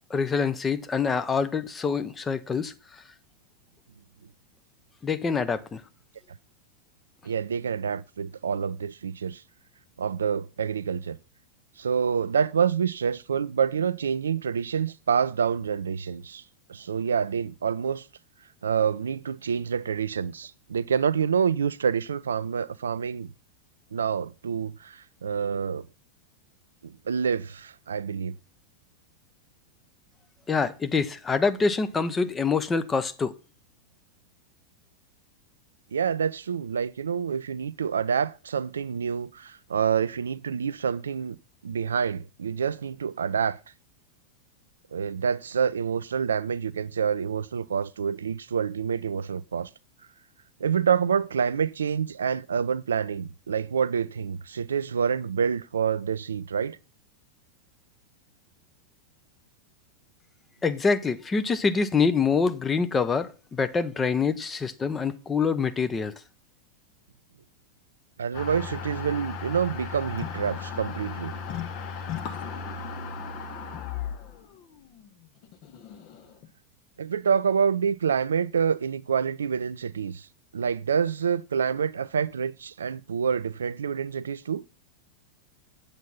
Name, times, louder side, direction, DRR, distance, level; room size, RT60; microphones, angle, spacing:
voice 1, 0.1-3.0 5.0-5.8 30.5-33.3 60.6-66.1, left 5 dB, 15° left, 0.9 m, -25 dB
voice 2, 7.2-9.4 10.0-11.2 11.8-16.4 16.7-18.1 18.6-23.3 23.9-25.9 26.8-28.3 35.9-41.4 41.6-43.6 44.9-49.7 50.6-56.8 68.2-71.3 77.0-80.3 80.5-84.6, right 7 dB, 70° right, 0.4 m, -27 dB
sound 1, 68.3-76.5, left 6 dB, 40° left, 1.4 m, -36 dB
8.3 x 8.1 x 5.6 m
figure-of-eight pair, 90°, 0 cm